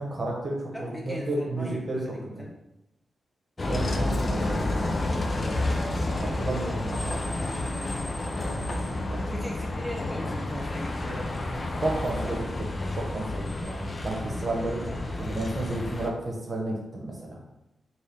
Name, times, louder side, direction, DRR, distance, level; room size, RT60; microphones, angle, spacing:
voice 1, 0.0-2.0 3.7-4.9 6.2-7.5 8.4-8.7 9.1-9.2 11.8-12.4 12.9-14.9 15.2-17.4, right 2 dB, 40° right, -2 dB, 1.1 m, -32 dB
voice 2, 0.7-2.5 5.6-5.9 9.3-12.6 14.8-15.0, equal, 5° left, -3 dB, 0.7 m, -39 dB
Bus, 3.6-16.1, left 2 dB, 40° left, 0.4 m, -30 dB
3.6 x 2.5 x 3.4 m, 0.91 s
cardioid pair, 65°, 0 cm